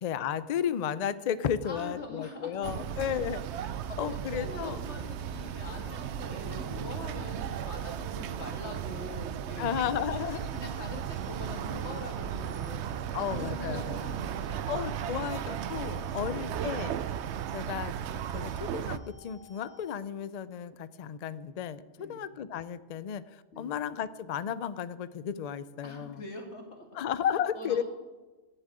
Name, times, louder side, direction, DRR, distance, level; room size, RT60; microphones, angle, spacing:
voice 1, 0.0-3.4 4.0-4.8 6.4-6.9 9.6-10.5 13.1-14.0 14.7-17.0 17.5-17.9 18.3-26.2 26.9-27.8, left 9 dB, 85° left, 15 dB, 0.3 m, -33 dB
voice 2, 1.6-3.3 3.9-9.7 10.5-12.9 13.1-14.7 16.1-16.5 22.0-22.2 23.5-23.7 25.8-26.9 27.5-27.8, left 2 dB, 60° left, 1 dB, 2.4 m, -43 dB
sound 1, 2.6-19.0, right 9 dB, 65° right, 0.8 m, -35 dB
sound 2, 9.7-20.0, left 5 dB, 30° right, 2.0 m, -56 dB
11.0 x 7.5 x 8.9 m, 1.2 s
omnidirectional pair, 1.3 m